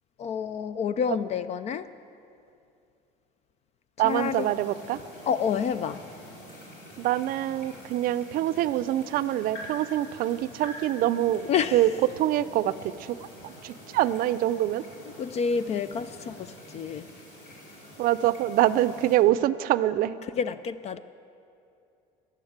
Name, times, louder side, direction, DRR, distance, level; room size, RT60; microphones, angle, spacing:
voice 1, 0.2-1.9 4.0-4.5 5.3-6.0 11.4-11.9 15.2-17.1 20.2-21.0, left 7 dB, 40° left, 0.4 m, -29 dB
sound 1, 4.0-19.2, equal, 70° left, 4.6 m, -46 dB
voice 2, 4.0-5.0 7.0-11.5 11.7-11.9 12.2-13.2 13.4-14.8 18.0-20.2, right 13 dB, 55° right, 0.5 m, -25 dB
13.5 x 11.0 x 7.3 m
supercardioid pair, 115°, 17 cm